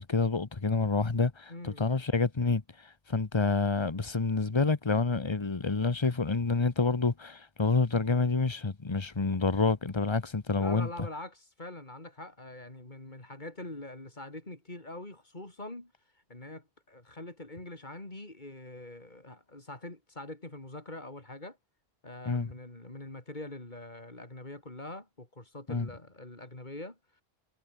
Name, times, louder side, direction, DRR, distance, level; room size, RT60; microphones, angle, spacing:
voice 1, 0.0-11.1 22.3-22.5 25.7-25.9, left 4 dB, 25° left, 1.1 m, -28 dB
voice 2, 1.5-1.9 10.6-15.9 16.3-21.6 22.0-27.0, left 2 dB, 45° left, 4.0 m, -44 dB
omnidirectional pair, 1.1 m